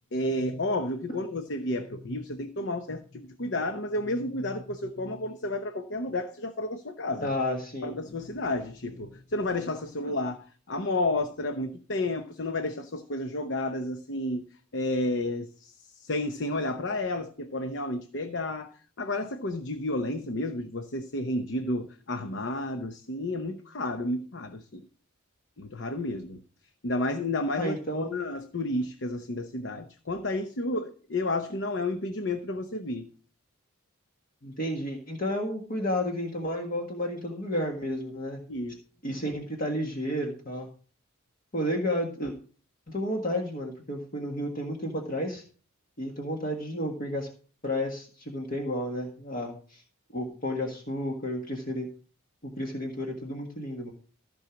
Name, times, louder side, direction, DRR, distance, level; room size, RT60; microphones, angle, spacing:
voice 1, 0.1-7.3 7.8-14.5 14.7-24.9 25.6-26.4 26.8-33.1 38.5-38.8, left 2 dB, 55° left, 0.9 m, -31 dB
voice 2, 7.2-7.9 27.6-28.1 34.4-38.4 39.0-40.7 41.5-42.3 42.9-45.4 46.0-47.3 47.6-49.8 50.1-51.9 52.4-53.9, left 1 dB, 40° left, 1.6 m, -31 dB
15.0 x 5.6 x 5.9 m
head